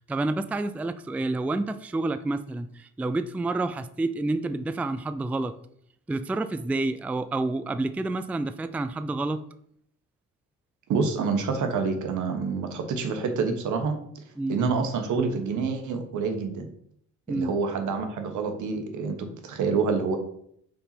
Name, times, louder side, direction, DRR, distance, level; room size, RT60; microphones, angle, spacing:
voice 1, 0.0-5.5 6.1-9.4 14.4-14.6 17.3-17.5, right 2 dB, 5° right, 12 dB, 0.3 m, -29 dB
voice 2, 10.9-14.0 14.5-16.7 17.3-20.2, right 4 dB, 75° right, 6 dB, 1.3 m, -27 dB
5.3 x 4.2 x 5.8 m, 0.68 s
cardioid pair, 90°, 30 cm